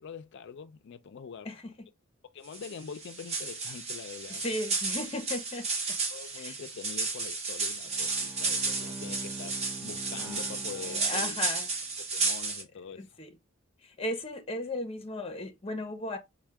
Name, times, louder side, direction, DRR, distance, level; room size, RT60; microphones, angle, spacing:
voice 1, 0.0-1.5 2.3-4.5 6.1-11.4 12.1-13.1, left 6 dB, 60° left, 0.4 m, -44 dB
sound 1, 2.5-12.6, right 3 dB, 30° right, 0.9 m, -33 dB
voice 2, 4.4-5.7 6.4-6.6 10.9-11.7 13.0-13.3 13.8-16.2, left 1 dB, 30° left, 0.7 m, -35 dB
Bowed string instrument, 7.8-11.9, right 2 dB, 15° right, 0.5 m, -45 dB
4.3 x 2.2 x 3.4 m
head